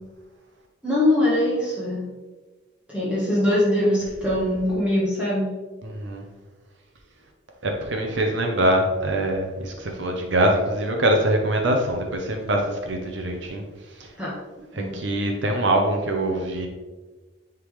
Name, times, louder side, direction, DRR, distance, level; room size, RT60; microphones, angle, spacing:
voice 1, 0.8-2.1 2.9-5.5 14.2-14.4 14.7-15.0, left 1 dB, 5° right, -9 dB, 1.3 m, -22 dB
voice 2, 5.8-6.2 7.6-13.6 14.7-16.7, right 1 dB, 65° right, 2 dB, 0.9 m, -23 dB
10.0 x 3.8 x 3.2 m, 1.3 s
head